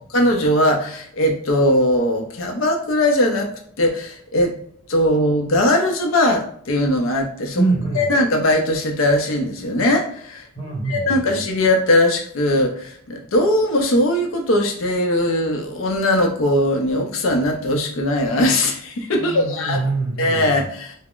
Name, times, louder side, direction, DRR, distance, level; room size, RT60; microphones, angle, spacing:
voice 1, 0.1-4.5 4.9-7.6 7.9-10.4 10.9-19.8 20.2-20.9, left 1 dB, 65° left, 3 dB, 0.5 m, -20 dB
voice 2, 7.5-8.0 10.5-11.2 19.1-20.5, right 3 dB, 20° left, -7 dB, 1.4 m, -24 dB
2.4 x 2.0 x 3.6 m, 0.63 s
head